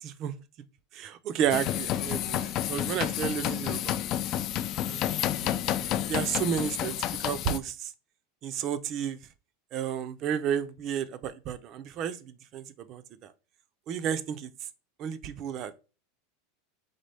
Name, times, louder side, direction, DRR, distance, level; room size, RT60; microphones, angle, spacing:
voice 1, 0.0-0.3 0.9-4.0 4.8-5.2 5.4-5.5 5.8-6.9 7.2-7.9 8.4-9.2 9.7-13.3 13.9-14.5 15.0-15.7, right 9 dB, 40° right, 0.5 m, -32 dB
sound 1, 1.5-7.6, left 11 dB, 40° left, 0.3 m, -30 dB
4.1 x 3.5 x 3.3 m
supercardioid pair, 145°, 0 cm